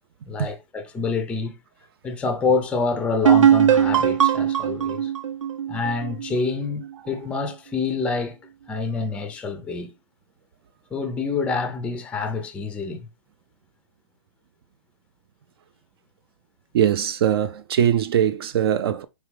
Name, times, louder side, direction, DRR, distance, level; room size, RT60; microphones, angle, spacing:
voice 1, 0.3-1.6 2.0-5.1 5.7-8.4 8.7-9.9 10.9-13.1, left 4 dB, 5° left, 0.5 m, -27 dB
sound 1, 3.3-6.8, right 9 dB, 85° right, 0.8 m, -19 dB
voice 2, 16.7-19.0, right 9 dB, 50° right, 0.4 m, -21 dB
4.8 x 3.2 x 3.3 m
hypercardioid pair, 140°, 16 cm